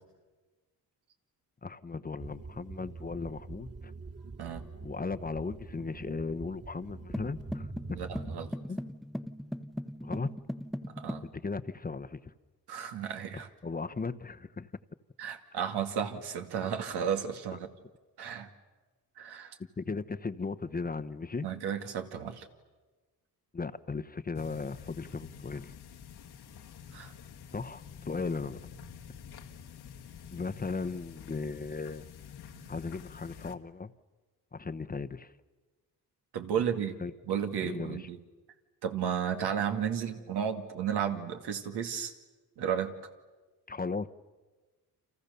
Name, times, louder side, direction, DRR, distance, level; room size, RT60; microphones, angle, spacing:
voice 1, 1.6-3.9 4.8-7.7 8.7-8.8 10.0-10.3 11.2-12.3 13.6-14.7 19.8-21.5 23.5-25.7 27.5-28.6 30.3-32.1 32.7-33.9 34.5-35.3 37.0-37.1 37.6-38.1 43.7-44.1, left 4 dB, 25° left, 10 dB, 1.0 m, -36 dB
sound 1, 2.2-8.5, right 3 dB, 40° right, 2.5 m, -45 dB
voice 2, 4.2-4.6 7.9-8.5 10.8-11.2 12.7-13.5 15.2-17.7 18.2-18.5 19.2-19.6 21.4-22.5 26.9-27.1 36.3-37.0 37.2-38.2 38.8-42.1 42.6-42.9, right 8 dB, 90° right, 5 dB, 2.4 m, -33 dB
sound 2, 7.1-11.3, equal, ahead, 0.9 m, -39 dB
sound 3, 24.3-33.5, left 7 dB, 85° left, 1.9 m, -48 dB
30.0 x 27.0 x 6.9 m, 1.3 s
cardioid pair, 85°, 38 cm